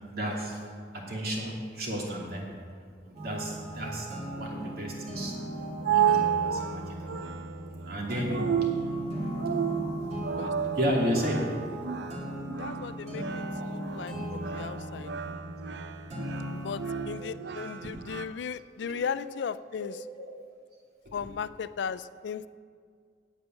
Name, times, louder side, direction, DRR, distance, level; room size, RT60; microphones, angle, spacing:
voice 1, 0.1-0.6 0.9-2.5 3.0-4.1 4.4-5.3 5.9-7.1 7.8-8.4 10.7-11.4 13.4-13.7 14.7-14.8 16.3-16.5 17.8-17.9 18.8-19.3 19.8-20.3 21.0-21.3, equal, 60° right, -1 dB, 2.6 m, -33 dB
sound 1, 3.1-17.0, equal, 45° right, 2.5 m, -38 dB
sound 2, 5.4-18.2, right 8 dB, 80° right, 0.5 m, -32 dB
voice 2, 12.6-13.2 13.6-15.1 16.6-19.9 21.1-22.5, left 6 dB, 80° left, 15 dB, 0.4 m, -36 dB
8.9 x 8.3 x 9.0 m, 2.1 s
head